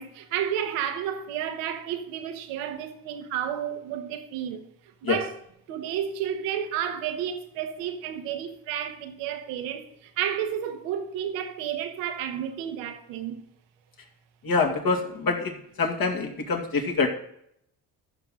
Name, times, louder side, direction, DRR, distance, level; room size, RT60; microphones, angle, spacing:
voice 1, 0.0-4.6 5.1-5.3 5.7-9.8 10.2-13.4, right 9 dB, 90° right, 1.4 m, -31 dB
voice 2, 14.4-17.1, left 4 dB, 50° left, 2.4 m, -25 dB
14.0 x 6.1 x 3.8 m
supercardioid pair, 60°, 44 cm